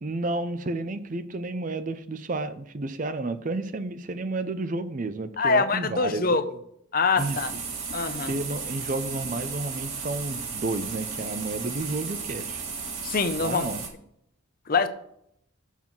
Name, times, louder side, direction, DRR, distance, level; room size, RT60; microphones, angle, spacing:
voice 1, 0.0-6.4 7.2-7.4 8.2-12.6 13.4-13.8, right 2 dB, 35° right, 0.5 m, -31 dB
voice 2, 5.4-6.4 6.9-7.5 7.9-8.3 13.0-13.7 14.7-14.9, left 4 dB, 40° left, 0.6 m, -24 dB
sound 1, 7.2-13.9, right 5 dB, 65° right, 2.3 m, -34 dB
7.3 x 5.6 x 5.9 m
head